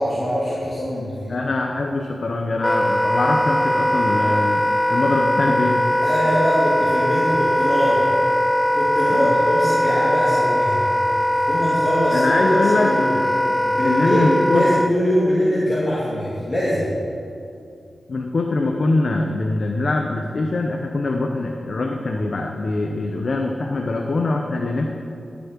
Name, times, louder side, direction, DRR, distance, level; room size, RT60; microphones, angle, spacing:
voice 1, 0.0-1.3 6.0-8.1 8.7-10.9 11.3-13.2 13.7-16.9, equal, 35° left, -8 dB, 2.8 m, -23 dB
voice 2, 1.3-6.0 9.1-9.4 12.1-12.9 13.8-14.7 18.1-25.0, left 2 dB, 60° left, 2 dB, 0.9 m, -23 dB
Wind instrument woodwind instrument, 2.6-14.9, left 1 dB, 5° left, 0.3 m, -20 dB
14.0 x 6.2 x 7.5 m, 2.5 s
wide cardioid pair, 75°, 0 cm